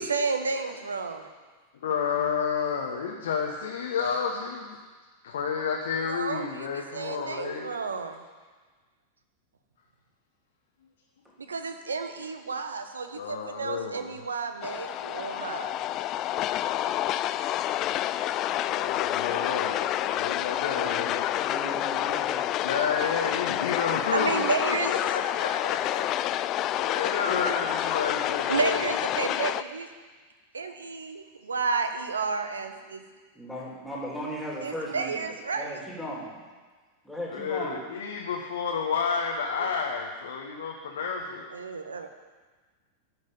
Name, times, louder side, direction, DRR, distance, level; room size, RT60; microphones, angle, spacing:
voice 1, 0.0-1.3 6.0-8.2 11.5-15.8 18.9-19.0 19.7-19.8 20.3-20.4 24.1-25.0 28.5-29.9 30.5-33.0 34.6-35.8 39.6-39.7 41.5-42.1, right 4 dB, 75° right, 7 dB, 1.1 m, -31 dB
voice 2, 1.8-4.8 5.2-7.7 13.1-14.1 18.6-21.2 22.6-26.1 26.8-28.9 37.3-41.5, left 6 dB, 60° left, 0 dB, 1.2 m, -30 dB
sound 1, 14.6-29.6, left 13 dB, 35° left, 0.4 m, -28 dB
voice 3, 20.6-22.8 33.3-35.2 35.5-36.4 37.0-37.7, equal, 5° left, -5 dB, 3.1 m, -37 dB
12.5 x 6.2 x 9.0 m, 1.4 s
figure-of-eight pair, 90°, 0 cm